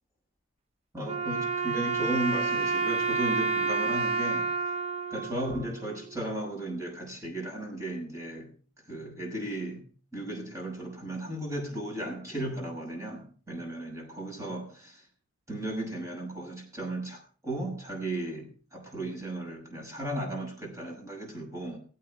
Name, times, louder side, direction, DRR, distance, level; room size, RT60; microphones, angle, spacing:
voice 1, 0.9-4.5 5.1-8.5 8.8-9.8 10.1-15.1 15.5-21.8, right 1 dB, 15° right, 6.1 m, -35 dB
Wind instrument woodwind instrument, 1.0-6.2, right 4 dB, 30° right, 0.9 m, -29 dB
21.0 x 8.7 x 4.9 m
head